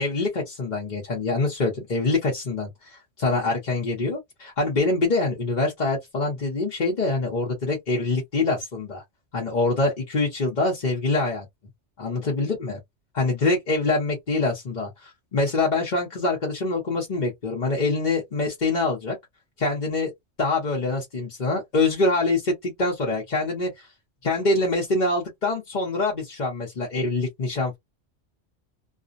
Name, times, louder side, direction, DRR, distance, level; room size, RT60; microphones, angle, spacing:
voice 1, 0.0-9.0 9.3-11.5 12.0-12.8 13.1-19.2 19.6-20.1 20.4-23.9 24.2-27.8, left 3 dB, 45° left, 0.9 m, -25 dB
2.5 x 2.1 x 2.5 m
omnidirectional pair, 1.2 m